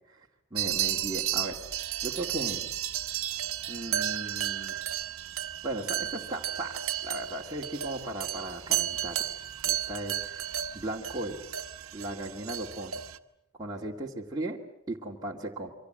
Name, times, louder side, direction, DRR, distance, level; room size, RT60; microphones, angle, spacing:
voice 1, 0.5-1.6 2.0-2.7 3.7-4.7 5.6-6.7 7.0-9.2 9.6-11.4 11.9-13.0 13.6-14.6 14.9-15.7, right 1 dB, 20° right, -3 dB, 2.4 m, -36 dB
sound 1, 0.6-13.2, right 11 dB, 75° right, 1.2 m, -33 dB
28.0 x 25.0 x 7.8 m, 0.80 s
head